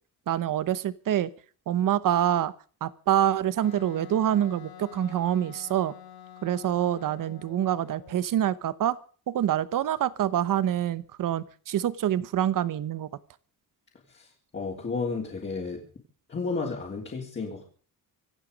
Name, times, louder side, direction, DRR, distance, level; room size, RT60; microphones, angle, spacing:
voice 1, 0.3-1.3 1.7-2.5 2.8-5.9 6.4-9.0 9.3-13.1, right 11 dB, 60° right, 16 dB, 1.0 m, -26 dB
Wind instrument woodwind instrument, 3.6-8.3, left 9 dB, 80° left, 2.6 m, -47 dB
voice 2, 14.1-15.8 16.3-17.6, left 4 dB, 30° left, -3 dB, 3.3 m, -32 dB
25.5 x 9.1 x 5.2 m, 0.42 s
wide cardioid pair, 175°, 36 cm